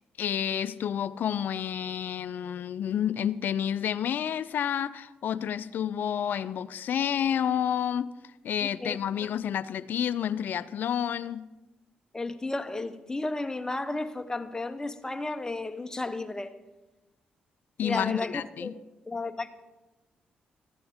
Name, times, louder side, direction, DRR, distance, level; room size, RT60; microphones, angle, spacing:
voice 1, 0.2-8.1 8.4-11.4 17.8-18.7, left 9 dB, 65° left, 0.4 m, -29 dB
voice 2, 8.6-9.3 12.1-16.5 17.8-18.7 19.1-19.5, left 2 dB, 20° left, 0.8 m, -33 dB
13.0 x 9.4 x 3.5 m
supercardioid pair, 55°, 3 cm